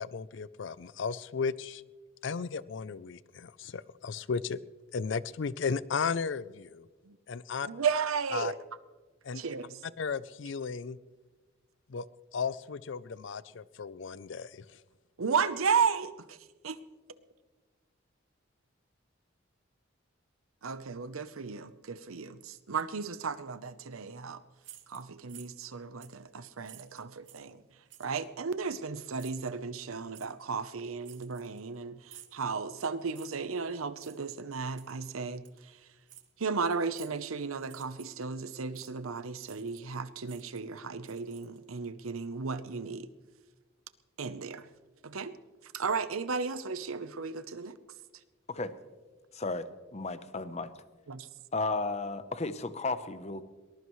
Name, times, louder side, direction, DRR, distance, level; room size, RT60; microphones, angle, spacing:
voice 1, 0.0-1.8 2.2-4.6 4.9-6.9 7.3-7.7 8.3-8.5 9.2-9.4 10.0-11.0 11.9-12.0 12.3-14.7, left 5 dB, 60° left, 18 dB, 0.5 m, -35 dB
voice 2, 7.6-8.6 9.3-9.8 15.2-16.4 16.6-16.8 20.6-24.4 24.9-27.6 28.0-35.8 36.4-43.1 44.2-44.7 45.0-45.4 45.6-47.8 51.1-51.3, right 5 dB, 90° right, 13 dB, 0.8 m, -34 dB
sound 1, 24.6-25.7 26.0-26.2 26.6-27.5 27.9-28.3 29.2-29.5 30.1-30.3 31.0-31.7 32.1-32.4 33.1-33.5 34.0-34.2 34.8-35.1 35.4-35.6 36.1-36.3 36.9-37.2 37.6-38.2 38.7-38.9 39.4-40.0 40.2-41.7, right 12 dB, 60° right, 1.2 m, -53 dB
voice 3, 49.3-50.7 51.5-53.4, left 3 dB, 30° left, 12 dB, 0.8 m, -34 dB
22.0 x 20.0 x 3.2 m, 1.3 s
head